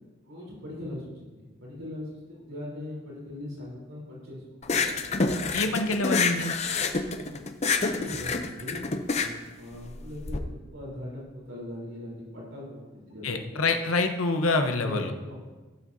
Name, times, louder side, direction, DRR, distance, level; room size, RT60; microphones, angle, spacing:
voice 1, 0.2-4.4 4.7-4.9 5.6-6.0 6.9-7.5 7.7-13.6 14.8-15.4, left 1 dB, 80° right, -4 dB, 3.7 m, -40 dB
sound 1, 4.6-10.4, left 4 dB, 30° left, 0.6 m, -27 dB
voice 2, 5.5-6.5 13.2-15.1, left 3 dB, 90° left, 6 dB, 0.9 m, -26 dB
17.0 x 7.6 x 2.7 m, 1.2 s
head